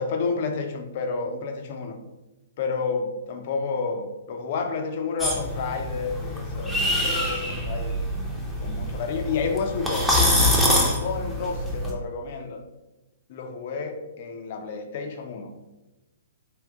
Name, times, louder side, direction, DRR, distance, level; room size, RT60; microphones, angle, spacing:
voice 1, 0.0-2.0 2.6-8.0 8.6-10.2 10.8-12.6 13.3-15.5, left 4 dB, 45° left, 4 dB, 0.6 m, -30 dB
sound 1, 5.2-11.9, left 1 dB, ahead, 0.8 m, -25 dB
3.6 x 2.5 x 3.6 m, 1.0 s
figure-of-eight pair, 120°, 0 cm